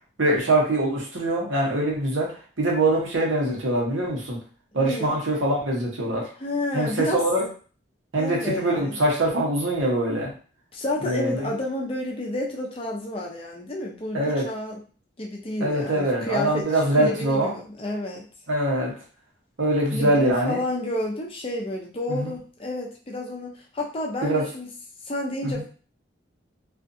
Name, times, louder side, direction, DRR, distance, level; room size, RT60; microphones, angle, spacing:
voice 1, 0.2-4.4 4.7-6.3 6.7-7.4 8.1-10.3 11.0-11.5 14.1-14.4 15.6-17.5 18.5-18.9 19.6-20.6 22.1-22.3 24.2-24.4 25.4-25.5, right 1 dB, 85° right, -2 dB, 0.9 m, -23 dB
voice 2, 4.8-5.2 6.4-7.2 8.2-9.0 10.7-14.8 15.2-18.2 19.9-24.7 25.0-25.7, left 1 dB, 30° left, -1 dB, 0.5 m, -30 dB
2.5 x 2.4 x 2.6 m, 0.39 s
head